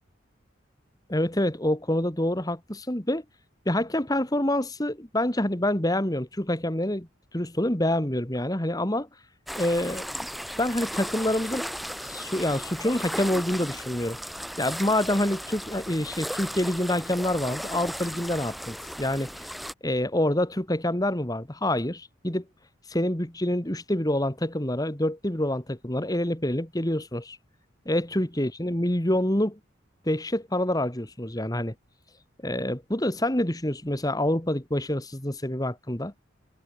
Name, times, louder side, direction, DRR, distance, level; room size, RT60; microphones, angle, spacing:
voice 1, 1.1-3.2 3.7-7.1 7.3-9.1 9.5-10.1 10.6-11.6 12.0-14.2 14.6-19.3 19.8-22.4 22.9-27.4 27.9-29.6 30.1-31.7 32.4-36.1, left 1 dB, 20° left, 2.1 m, -27 dB
sound 1, 9.5-19.7, equal, ahead, 4.9 m, -36 dB
head